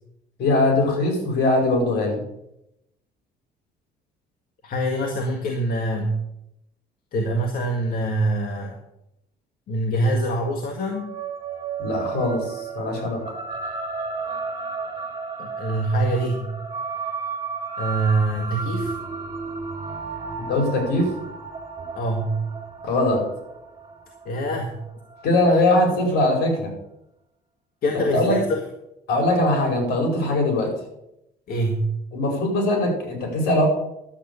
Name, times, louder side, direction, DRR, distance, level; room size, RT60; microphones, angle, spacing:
voice 1, 0.4-2.3 11.8-13.2 20.4-21.1 22.8-23.2 25.2-26.7 28.1-28.4 29.1-30.7 32.1-33.7, left 2 dB, 75° left, 1 dB, 5.2 m, -21 dB
voice 2, 4.6-6.2 7.1-8.8 9.7-11.1 15.4-16.5 17.8-18.9 21.9-22.4 24.3-24.8 27.8-28.6 31.5-31.8, right 1 dB, 60° left, 2 dB, 1.8 m, -24 dB
sound 1, 10.9-25.6, right 5 dB, 25° right, 3.4 m, -33 dB
11.5 x 8.1 x 7.0 m, 0.83 s
cardioid pair, 110°, 17 cm